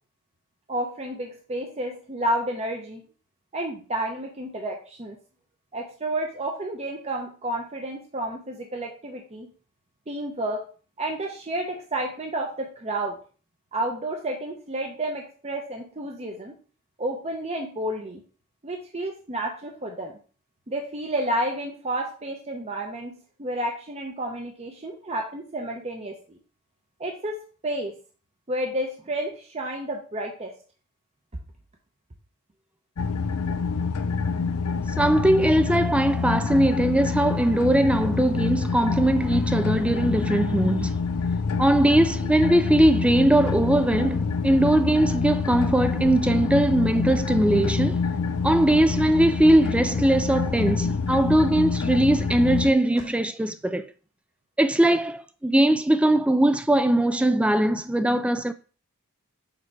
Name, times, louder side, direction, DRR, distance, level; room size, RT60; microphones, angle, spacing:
voice 1, 0.7-3.0 3.5-5.2 5.7-9.5 10.1-10.6 11.0-13.2 13.7-16.5 17.0-18.2 18.6-20.1 20.7-26.4 27.0-27.4 27.6-28.0 28.5-30.5, right 1 dB, 30° right, 0.7 m, -30 dB
sound 1, 33.0-52.7, left 5 dB, 80° left, 0.5 m, -26 dB
voice 2, 35.0-40.9 41.6-48.0 48.4-53.8 54.6-58.5, right 1 dB, 5° right, 0.3 m, -20 dB
6.7 x 3.2 x 4.6 m
head